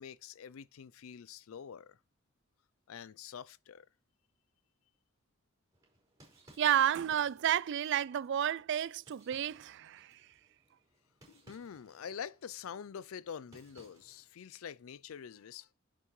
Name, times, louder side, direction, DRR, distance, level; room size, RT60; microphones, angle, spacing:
voice 1, 0.0-2.0 2.9-3.9 11.3-15.7, left 7 dB, 70° left, 0.4 m, -46 dB
sound 1, 5.7-14.4, right 1 dB, 15° right, 5.4 m, -64 dB
voice 2, 6.6-10.2, right 10 dB, 55° right, 0.3 m, -31 dB
11.0 x 6.0 x 3.2 m
head